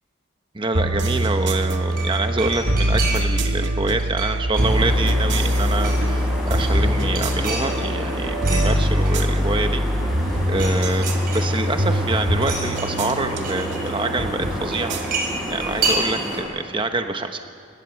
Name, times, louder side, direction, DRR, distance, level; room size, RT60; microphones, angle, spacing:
voice 1, 0.5-9.8 10.5-17.4, right 2 dB, 25° right, 6 dB, 1.0 m, -26 dB
sound 1, 0.7-16.0, equal, 70° right, 1.9 m, -23 dB
sound 2, 1.7-3.5 3.8-5.1 5.5-6.2 6.5-8.6 9.0-9.9 10.2-10.8 11.0-11.9 12.4-13.9 14.7-16.5 16.7-16.8, right 3 dB, 50° right, 6.2 m, -30 dB
sound 3, 4.5-16.4, equal, ahead, 6.7 m, -31 dB
29.5 x 16.5 x 7.0 m, 2.5 s
head